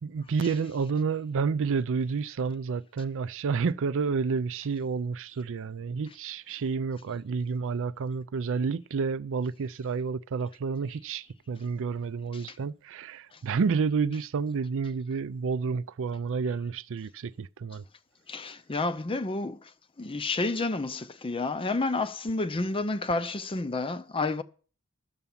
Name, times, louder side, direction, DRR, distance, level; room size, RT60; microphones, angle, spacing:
voice 1, 0.0-17.8, right 5 dB, 60° right, 0.4 m, -30 dB
voice 2, 18.3-19.6 20.0-24.4, left 3 dB, 25° left, 0.6 m, -30 dB
12.0 x 6.9 x 7.1 m
head